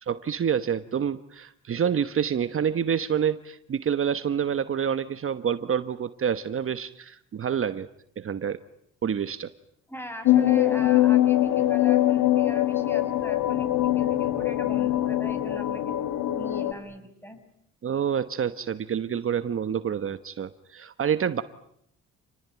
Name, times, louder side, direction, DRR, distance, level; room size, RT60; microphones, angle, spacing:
voice 1, 0.0-7.9 8.2-8.6 9.0-9.5 17.8-21.4, right 8 dB, 45° right, 11 dB, 1.1 m, -27 dB
voice 2, 9.9-15.9 16.3-17.4, equal, 5° left, 9 dB, 6.3 m, -40 dB
sound 1, 10.2-16.7, left 13 dB, 80° left, 1.6 m, -23 dB
29.0 x 20.0 x 9.5 m, 0.73 s
cardioid pair, 90°, 30 cm